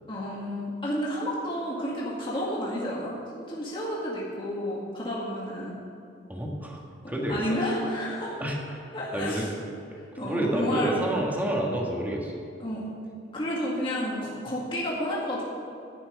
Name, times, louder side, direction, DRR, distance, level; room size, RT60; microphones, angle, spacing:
voice 1, 0.1-5.8 7.3-8.4 8.9-9.5 10.2-11.0 12.6-13.0 13.3-15.4, left 1 dB, 30° left, -6 dB, 2.0 m, -31 dB
voice 2, 6.3-6.8 7.1-7.6 8.4-8.6 9.1-9.5 10.2-12.3, right 1 dB, 10° right, -2 dB, 1.5 m, -28 dB
11.0 x 5.9 x 8.9 m, 2.4 s
head